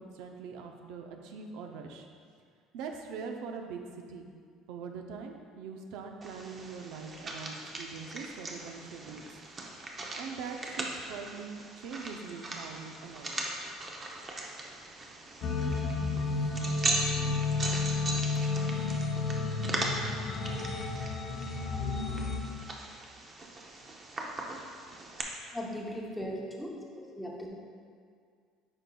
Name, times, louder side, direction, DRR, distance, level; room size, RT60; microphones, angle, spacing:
voice 1, 0.0-2.1 2.7-4.3 4.7-9.3 10.1-13.3, right 5 dB, 80° right, 3 dB, 0.6 m, -42 dB
sound 1, 6.2-25.2, right 2 dB, 25° right, 0.7 m, -39 dB
sound 2, 15.4-22.4, left 3 dB, 40° left, 0.6 m, -31 dB
voice 2, 25.5-27.5, equal, 5° left, -2 dB, 0.8 m, -38 dB
8.9 x 5.3 x 2.3 m, 2.1 s
cardioid pair, 150°, 0 cm